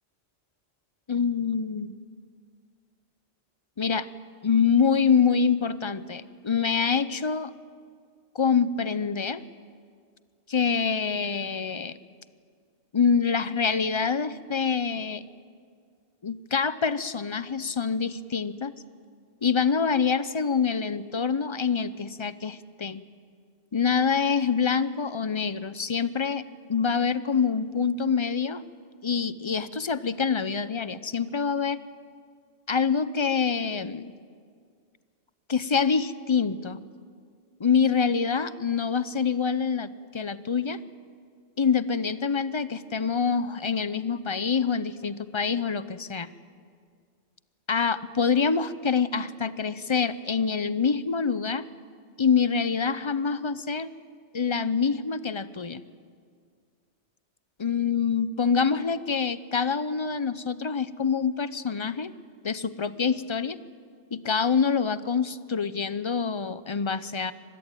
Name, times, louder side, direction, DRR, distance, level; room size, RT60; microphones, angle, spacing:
voice 1, 1.1-1.9 3.8-4.1 4.4-7.5 8.3-9.4 10.5-12.0 12.9-15.2 16.2-18.7 19.4-23.0 23.7-28.6 29.0-31.8 32.7-34.1 35.5-36.8 37.6-40.8 41.6-46.3 47.7-51.7 52.2-53.9 54.3-55.8 57.6-62.1 62.4-63.6 64.1-67.3, left 6 dB, 30° left, 15 dB, 0.7 m, -26 dB
25.0 x 20.5 x 9.1 m, 2.1 s
omnidirectional pair, 1.2 m